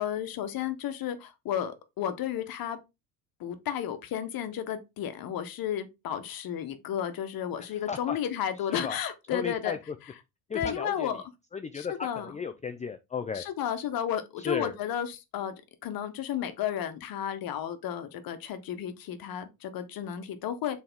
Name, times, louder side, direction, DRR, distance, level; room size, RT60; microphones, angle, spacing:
voice 1, 0.0-2.8 3.4-9.8 10.5-11.2 11.7-12.3 13.3-15.5 15.8-20.8, left 9 dB, 50° left, 1.4 m, -33 dB
voice 2, 7.6-8.2 8.6-9.0 9.3-9.9 10.5-11.2 11.5-13.4 14.4-14.7, left 6 dB, 15° left, 0.6 m, -35 dB
6.9 x 4.9 x 3.7 m
hypercardioid pair, 70°, 44 cm